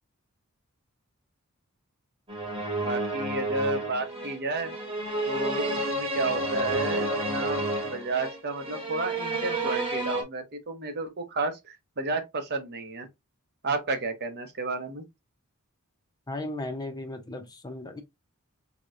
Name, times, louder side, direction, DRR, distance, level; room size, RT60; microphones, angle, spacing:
sound 1, 2.3-10.2, right 2 dB, 25° right, 1.2 m, -30 dB
voice 1, 2.8-4.7 5.3-13.1 13.6-15.1, right 3 dB, 50° right, 0.8 m, -32 dB
voice 2, 16.3-18.0, left 2 dB, 20° left, 0.6 m, -36 dB
4.2 x 2.9 x 2.5 m
head